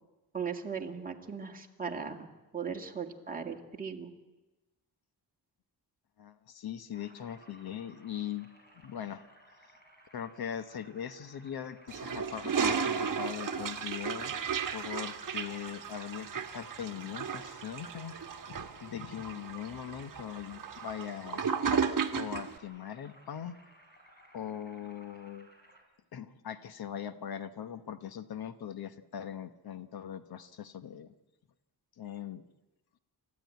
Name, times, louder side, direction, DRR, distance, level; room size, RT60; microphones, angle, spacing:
voice 1, 0.3-2.3 2.5-4.1, right 6 dB, 20° right, 1 dB, 2.0 m, -38 dB
voice 2, 6.2-8.5 8.8-9.3 10.1-14.4 14.7-18.2 18.5-21.5 22.1-23.6 24.3-25.5 26.1-31.1 32.0-32.4, left 9 dB, 60° left, 11 dB, 1.0 m, -41 dB
sound 1, 6.9-25.8, equal, 25° left, 4.8 m, -59 dB
Toilet flush, 11.9-22.5, right 6 dB, 50° right, 1.4 m, -34 dB
29.0 x 14.0 x 9.3 m, 1.1 s
wide cardioid pair, 175°, 41 cm